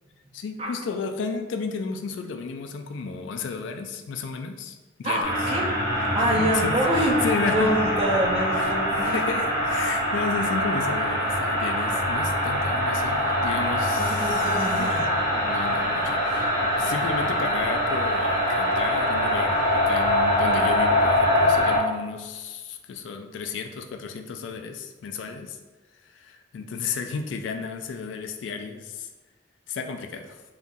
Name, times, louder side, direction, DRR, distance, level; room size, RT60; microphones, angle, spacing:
voice 1, 0.3-5.3 6.3-7.7 8.5-8.8 9.1-14.8 15.3-25.6 26.0-29.1 29.7-30.4, left 5 dB, 80° left, 6 dB, 0.3 m, -33 dB
voice 2, 5.0-5.7 6.1-9.2 14.0-15.1, right 1 dB, 30° right, -1 dB, 0.4 m, -26 dB
sound 1, 5.2-21.8, left 1 dB, 50° right, 1.3 m, -24 dB
2.9 x 2.4 x 2.5 m, 1.2 s
head